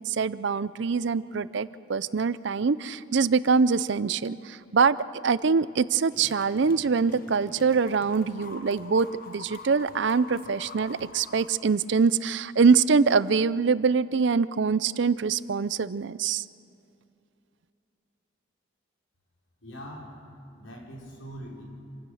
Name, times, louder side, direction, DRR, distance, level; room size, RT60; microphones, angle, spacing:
voice 1, 0.0-5.0 5.2-16.5, right 5 dB, 60° right, 17 dB, 0.5 m, -24 dB
sound 1, 6.1-12.1, left 3 dB, 45° left, 1.1 m, -46 dB
voice 2, 19.6-20.2 20.5-21.6, equal, 85° left, -2 dB, 5.0 m, -42 dB
27.0 x 16.0 x 6.4 m, 2.6 s
head